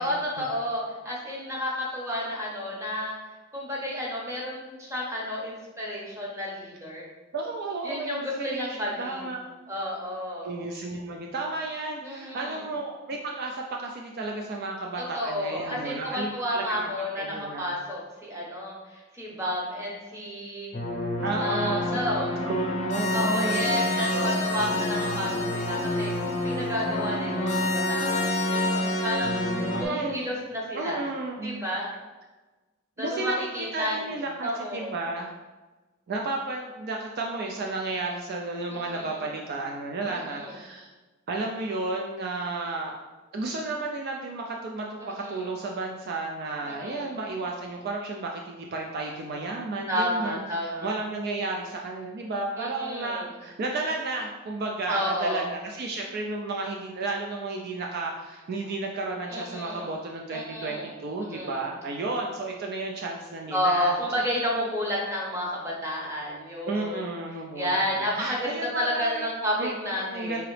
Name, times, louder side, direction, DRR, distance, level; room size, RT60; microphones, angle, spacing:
voice 1, 0.0-3.2 3.5-7.1 7.8-9.3 9.7-10.5 12.0-12.6 15.1-20.7 21.4-22.3 23.1-26.1 26.4-29.4 29.8-31.0 31.4-31.9 33.0-34.1 34.4-34.9 38.7-39.3 40.1-40.6 45.0-45.5 46.6-47.1 49.9-50.9 52.6-53.3 54.9-55.4 59.3-59.9 60.3-60.9 61.3-61.6 63.5-67.0 67.5-70.4, equal, 15° right, -4 dB, 0.9 m, -31 dB
voice 2, 7.3-9.4 10.4-16.9 17.2-17.7 21.2-22.0 22.5-24.3 29.7-30.3 30.7-31.7 33.0-35.3 36.1-40.9 41.3-43.0 43.3-64.0 66.7-69.3 69.6-70.4, right 2 dB, 50° right, 0 dB, 0.4 m, -33 dB
sound 1, 20.7-29.9, left 1 dB, 35° left, 0.6 m, -27 dB
4.7 x 2.9 x 3.2 m, 1.2 s
head